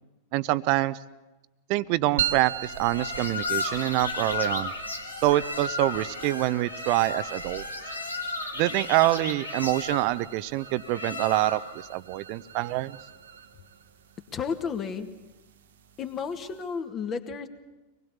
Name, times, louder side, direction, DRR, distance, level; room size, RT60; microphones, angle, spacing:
voice 1, 0.3-1.0 1.7-4.7 5.2-7.6 8.6-11.6 11.9-13.0, right 17 dB, 45° right, 16 dB, 0.8 m, -25 dB
sound 1, 2.2-16.8, right 10 dB, 65° right, 1.3 m, -40 dB
sound 2, 2.6-11.8, left 3 dB, 85° left, 2.3 m, -34 dB
voice 2, 14.3-15.1 16.0-17.5, left 6 dB, 30° left, 7 dB, 2.0 m, -32 dB
25.0 x 20.5 x 7.2 m, 1.1 s
figure-of-eight pair, 90°, 0 cm